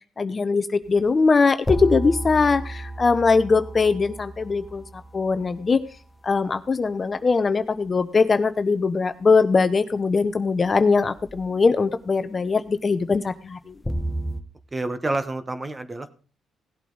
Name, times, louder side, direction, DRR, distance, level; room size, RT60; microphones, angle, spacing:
voice 1, 0.2-5.8 6.2-13.8, left 4 dB, 35° left, 11 dB, 0.8 m, -21 dB
sound 1, 0.9-1.0 1.7-6.1 11.2-11.5 13.8-14.4, right 1 dB, 10° left, 1.1 m, -32 dB
voice 2, 14.7-16.1, right 2 dB, 20° right, 11 dB, 1.2 m, -28 dB
17.0 x 8.2 x 4.0 m, 0.41 s
cardioid pair, 80°, 0 cm